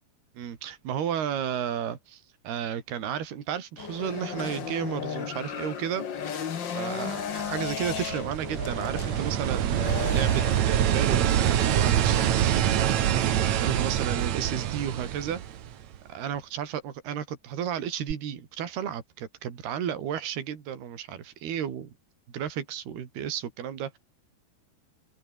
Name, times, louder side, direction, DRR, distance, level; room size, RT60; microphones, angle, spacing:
voice 1, 0.4-6.0 6.3-6.5 6.7-12.8 13.1-15.4 16.1-21.9 22.3-24.0, right 9 dB, 75° right, 4.9 m, -33 dB
sound 1, 3.8-11.8, left 8 dB, 70° left, 1.0 m, -35 dB
sound 2, 7.5-16.0 18.1-18.2, right 10 dB, 55° right, 2.3 m, -25 dB
open air
omnidirectional pair, 4.7 m